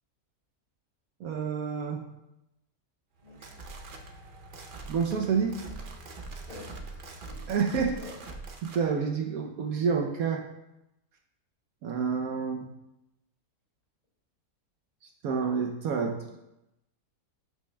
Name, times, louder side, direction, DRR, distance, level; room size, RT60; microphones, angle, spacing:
voice 1, 1.2-2.0 4.9-5.6 7.5-8.0 8.6-10.4 11.8-12.7 15.2-16.2, right 6 dB, 70° right, 3 dB, 1.0 m, -28 dB
voice 2, 3.2-3.6 6.4-7.0 7.3-7.5 8.0-8.1, left 1 dB, 25° left, -5 dB, 2.6 m, -47 dB
sound 1, 3.2-8.9, right 3 dB, 55° right, 0.6 m, -43 dB
12.0 x 5.5 x 2.2 m, 0.91 s
omnidirectional pair, 1.6 m